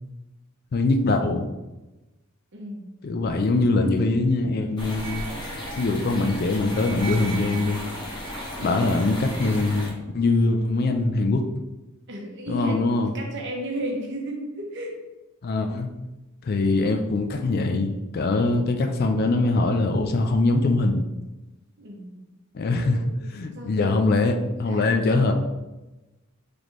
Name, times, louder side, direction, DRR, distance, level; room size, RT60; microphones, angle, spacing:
voice 1, 0.7-1.5 3.0-5.2 5.8-7.8 8.6-11.4 12.5-13.1 15.4-15.9 16.4-21.0 22.5-23.0 23.3-25.3, left 2 dB, 45° left, 5 dB, 0.3 m, -22 dB
voice 2, 2.5-2.8 8.6-8.9 11.1-11.3 12.1-14.9 21.8-22.2 22.6-24.3 24.7-25.3, equal, 55° right, 0 dB, 0.9 m, -35 dB
sound 1, 4.8-9.9, equal, 20° left, 0.7 m, -34 dB
4.1 x 3.3 x 3.0 m, 1.1 s
head